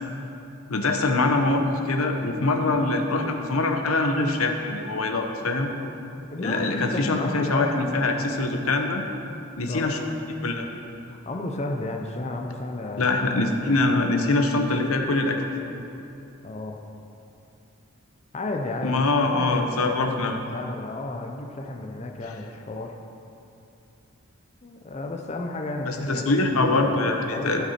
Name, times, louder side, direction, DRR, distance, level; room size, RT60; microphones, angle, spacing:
voice 1, 0.7-5.7 6.4-9.0 9.6-10.0 10.4-10.8 13.0-15.5 18.8-20.4 25.9-27.7, left 2 dB, 85° left, 4 dB, 0.9 m, -24 dB
voice 2, 6.3-8.2 9.7-9.9 11.1-13.2 13.6-14.0 16.4-16.8 18.3-22.9 24.6-27.6, left 2 dB, 30° left, 3 dB, 0.6 m, -33 dB
15.5 x 5.9 x 4.4 m, 2.8 s
head